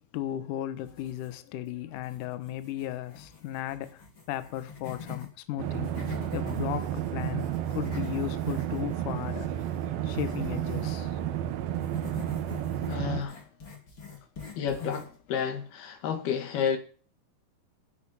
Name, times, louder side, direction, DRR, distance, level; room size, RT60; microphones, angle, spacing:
voice 1, 0.1-5.9 6.3-9.5 10.0-11.2, left 12 dB, 90° left, 1.8 m, -35 dB
sound 1, 0.8-1.6 1.9-5.3 5.7-11.0 11.7-15.2, left 5 dB, 30° left, 3.5 m, -45 dB
sound 2, 5.6-13.2, right 11 dB, 70° right, 2.5 m, -31 dB
voice 2, 12.9-13.4 14.6-16.8, left 7 dB, 65° left, 3.5 m, -30 dB
10.5 x 8.6 x 7.2 m
omnidirectional pair, 5.1 m